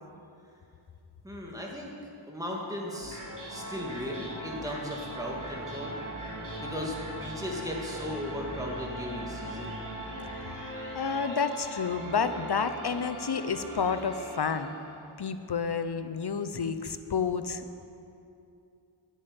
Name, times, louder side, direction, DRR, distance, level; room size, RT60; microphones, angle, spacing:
voice 1, 1.2-1.9 2.3-3.2 3.5-6.0 6.6-9.8, left 1 dB, 5° right, -2 dB, 2.5 m, -36 dB
sound 1, 2.9-15.1, right 1 dB, 40° right, 3.0 m, -40 dB
voice 2, 10.4-14.7 15.2-17.9, left 5 dB, 50° left, 10 dB, 0.8 m, -30 dB
10.5 x 9.1 x 8.9 m, 2.6 s
wide cardioid pair, 70°, 50 cm